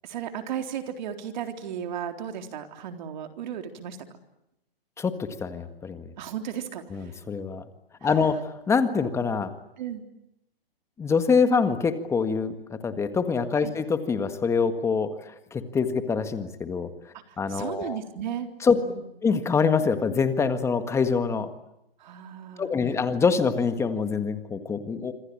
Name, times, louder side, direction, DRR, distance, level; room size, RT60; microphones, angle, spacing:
voice 1, 0.0-4.0 6.2-7.2 8.0-8.3 9.8-10.1 13.6-13.7 17.1-19.0 22.0-22.7, right 9 dB, 50° right, 6 dB, 3.9 m, -35 dB
voice 2, 5.0-6.1 6.9-7.6 8.0-9.5 11.0-16.9 17.4-18.0 18.6-18.8 19.2-21.5 22.6-25.1, left 5 dB, 10° left, 10 dB, 1.7 m, -25 dB
26.5 x 26.0 x 8.7 m, 0.86 s
hypercardioid pair, 150°, 30 cm